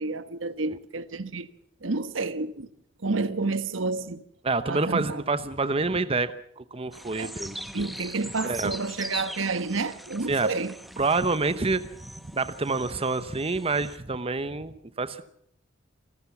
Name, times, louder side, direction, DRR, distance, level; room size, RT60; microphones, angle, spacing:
voice 1, 0.0-1.5 1.8-2.7 3.0-4.2 4.7-5.2 7.1-7.3 7.7-10.7, right 3 dB, 80° right, 1.2 m, -30 dB
voice 2, 4.4-7.6 8.4-8.7 10.3-10.5 11.0-11.9 12.3-15.2, right 3 dB, 30° right, 0.9 m, -27 dB
sound 1, 6.9-14.0, equal, ahead, 1.1 m, -41 dB
27.5 x 14.5 x 7.1 m
head